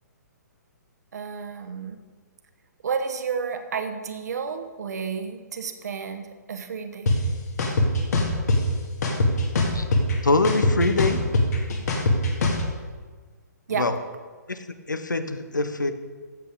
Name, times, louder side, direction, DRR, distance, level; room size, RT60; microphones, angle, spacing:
voice 1, 1.1-2.0 2.8-7.1 13.7-13.9, right 6 dB, 60° right, 8 dB, 1.2 m, -31 dB
sound 1, 7.1-7.2 7.6-8.6 9.0-10.1 10.4-12.6, left 2 dB, 65° left, 2.2 m, -21 dB
voice 2, 10.2-11.2 13.7-14.0 14.5-14.6 14.9-15.9, left 3 dB, 85° left, 10 dB, 0.9 m, -23 dB
14.5 x 7.2 x 3.7 m, 1.5 s
figure-of-eight pair, 130°, 10 cm